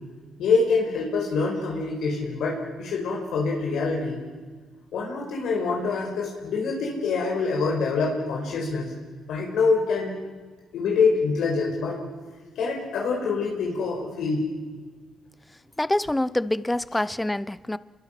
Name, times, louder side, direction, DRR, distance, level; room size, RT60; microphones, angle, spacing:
voice 1, 0.4-4.2 4.9-8.9 9.3-10.1 10.7-12.0 12.6-14.4, left 4 dB, 80° left, -1 dB, 5.3 m, -25 dB
voice 2, 15.8-17.8, left 1 dB, 10° left, 17 dB, 0.7 m, -26 dB
28.5 x 22.5 x 6.1 m, 1.4 s
cardioid pair, 90°, 0 cm